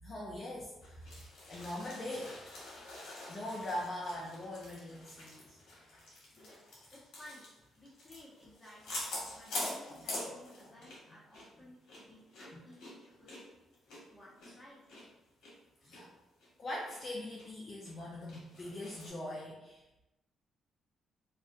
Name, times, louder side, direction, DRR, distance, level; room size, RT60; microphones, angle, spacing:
voice 1, 0.0-1.1 1.5-2.4 3.3-5.6 12.5-12.6 15.8-16.1 16.6-19.8, left 1 dB, 40° left, -3 dB, 0.4 m, -41 dB
sound 1, 0.8-11.1 11.3-11.5 11.8-15.0 15.4-15.5 15.9-16.0 16.4-17.0 17.4-17.5 17.8-19.1, left 2 dB, 80° left, 0.9 m, -45 dB
voice 2, 6.9-7.5 7.8-9.0 9.3-13.4 14.1-14.8, left 1 dB, 10° left, -6 dB, 0.9 m, -56 dB
2.4 x 2.4 x 2.3 m, 0.97 s
cardioid pair, 90°, 0 cm